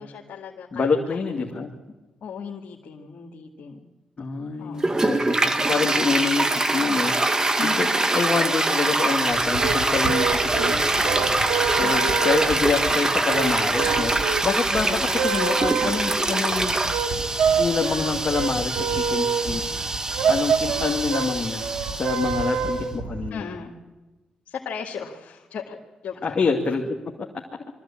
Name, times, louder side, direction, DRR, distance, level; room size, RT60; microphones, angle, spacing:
voice 1, 0.0-0.9 1.3-1.5 2.2-3.8 4.6-5.2 7.6-8.1 11.8-12.1 23.3-23.8 24.5-25.8 26.0-26.3, left 6 dB, 70° left, -1 dB, 2.1 m, -36 dB
voice 2, 0.7-1.7 4.2-16.8 17.6-19.6 20.3-21.6 21.9-23.5 26.2-27.0, left 4 dB, 45° left, 0 dB, 2.3 m, -27 dB
Toilet flush, 4.8-22.7, right 2 dB, 25° right, 1.7 m, -24 dB
sound 1, 9.3-23.3, right 6 dB, 80° right, 2.1 m, -27 dB
23.0 x 14.5 x 8.6 m, 1.2 s
cardioid pair, 70°, 3 cm